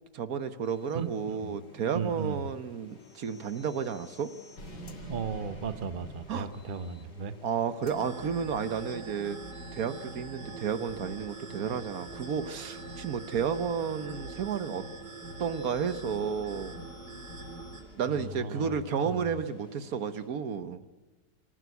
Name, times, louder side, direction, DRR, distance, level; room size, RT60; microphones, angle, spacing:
voice 1, 0.1-4.3 6.3-6.5 7.4-9.4 9.7-14.8 15.4-16.8 18.0-20.8, right 7 dB, 60° right, 12 dB, 1.3 m, -32 dB
sound 1, 0.6-20.3, left 1 dB, 40° left, 2.1 m, -56 dB
voice 2, 0.9-1.6 1.9-2.4 5.1-7.3 18.1-18.8 19.1-19.3, right 5 dB, 40° right, 12 dB, 0.8 m, -36 dB
sound 2, 3.0-7.3, right 1 dB, 75° left, 4.2 m, -47 dB
sound 3, 7.8-17.8, right 2 dB, 85° right, 4.4 m, -43 dB
26.5 x 14.0 x 8.2 m, 1.1 s
omnidirectional pair, 1.9 m